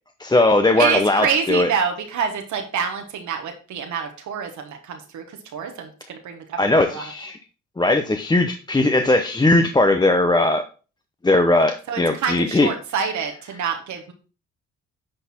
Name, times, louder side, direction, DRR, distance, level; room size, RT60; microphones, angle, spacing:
voice 1, 0.2-1.7 6.6-7.4 7.8-10.6 11.2-12.7, left 2 dB, 15° left, 6 dB, 0.7 m, -18 dB
voice 2, 0.8-7.0 11.9-14.1, right 6 dB, 75° right, 4 dB, 1.3 m, -27 dB
9.8 x 4.1 x 4.3 m, 0.35 s
cardioid pair, 90°, 30 cm